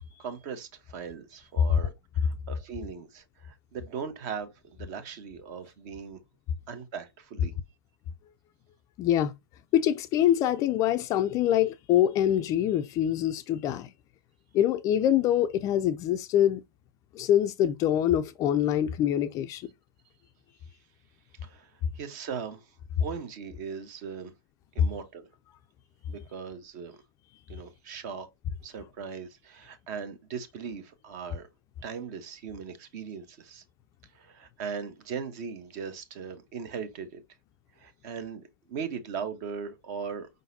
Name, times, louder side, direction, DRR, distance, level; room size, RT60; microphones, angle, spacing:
voice 1, 0.2-1.9 2.2-6.2 6.7-7.5 21.4-21.7 21.9-22.6 23.0-24.3 24.7-25.3 26.1-27.0 27.5-28.3 28.6-31.5 31.8-33.6 34.1-37.2 37.8-40.3, right 6 dB, 45° right, 1.0 m, -39 dB
voice 2, 9.0-9.3 9.7-13.9 14.5-16.6 17.1-19.7, left 11 dB, 25° left, 0.4 m, -24 dB
5.1 x 3.9 x 2.7 m
hypercardioid pair, 130°, 12 cm